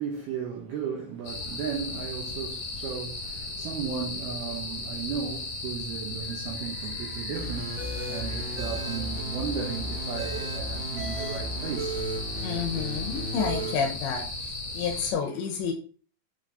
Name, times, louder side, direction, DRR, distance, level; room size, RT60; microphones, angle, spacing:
voice 1, 0.0-12.1, right 7 dB, 75° right, 2.4 m, -35 dB
sound 1, 1.2-15.1, left 2 dB, 50° left, 3.9 m, -36 dB
sound 2, 7.3-13.7, right 1 dB, 55° right, 3.8 m, -35 dB
voice 2, 12.4-14.3 14.7-15.7, left 6 dB, 75° left, 3.0 m, -29 dB
8.8 x 4.1 x 3.9 m
omnidirectional pair, 5.8 m